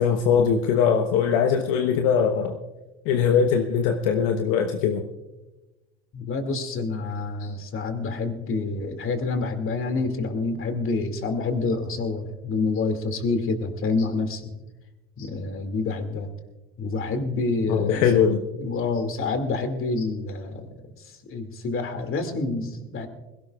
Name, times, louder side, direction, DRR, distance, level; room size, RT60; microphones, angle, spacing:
voice 1, 0.0-2.6 3.0-5.0 15.2-15.3 17.7-18.4, left 7 dB, 70° left, 5 dB, 1.1 m, -21 dB
voice 2, 6.1-14.6 15.2-16.3 16.8-20.7 21.0-23.1, left 3 dB, 40° left, 7 dB, 2.4 m, -28 dB
21.5 x 17.0 x 2.4 m, 1.1 s
hypercardioid pair, 75°, 32 cm